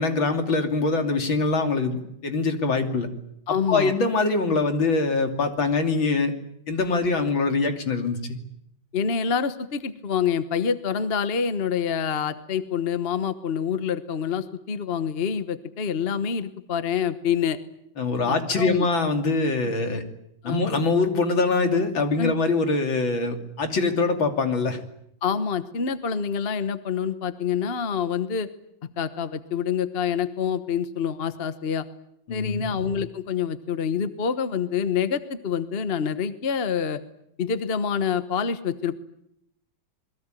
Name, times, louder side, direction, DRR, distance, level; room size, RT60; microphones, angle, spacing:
voice 1, 0.0-3.1 3.7-6.3 6.7-8.4 18.0-20.0 20.4-24.8 32.3-32.8, left 3 dB, 75° left, 5 dB, 3.6 m, -23 dB
voice 2, 3.5-3.9 8.9-17.6 18.3-18.9 19.6-19.7 20.4-20.6 22.2-22.3 25.2-28.5 29.0-31.8 32.3-37.0 37.4-39.0, left 7 dB, 35° left, 11 dB, 1.2 m, -26 dB
27.5 x 22.0 x 9.2 m, 0.78 s
omnidirectional pair, 2.2 m